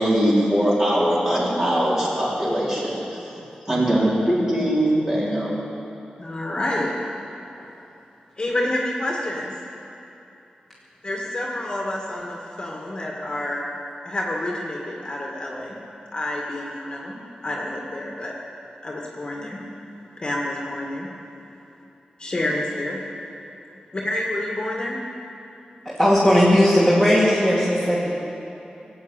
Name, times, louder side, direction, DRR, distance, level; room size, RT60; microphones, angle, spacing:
voice 1, 0.0-3.2 3.7-5.6, right 1 dB, 20° right, -7 dB, 4.6 m, -21 dB
voice 2, 6.2-6.9 8.4-9.5 11.0-13.6 14.0-15.8 16.1-18.3 18.8-19.6 20.2-21.1 22.2-23.0 23.9-25.0, left 1 dB, 35° left, -2 dB, 2.0 m, -28 dB
voice 3, 25.8-28.1, equal, 5° right, -7 dB, 2.5 m, -18 dB
20.0 x 8.0 x 9.1 m, 2.8 s
wide cardioid pair, 120°, 3 cm